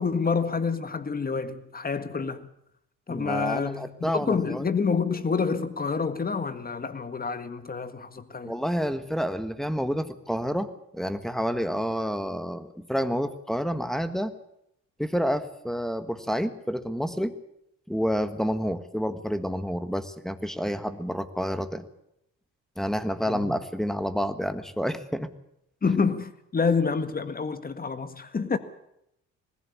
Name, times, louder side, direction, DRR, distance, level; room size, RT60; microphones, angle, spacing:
voice 1, 0.0-2.5 3.1-8.6 23.3-23.6 25.8-28.6, left 5 dB, 30° left, 1.7 m, -28 dB
voice 2, 3.1-4.7 8.4-14.3 15.0-17.4 17.9-21.8 22.8-25.3, equal, ahead, 1.6 m, -29 dB
20.0 x 15.5 x 8.4 m
cardioid pair, 90°, 30 cm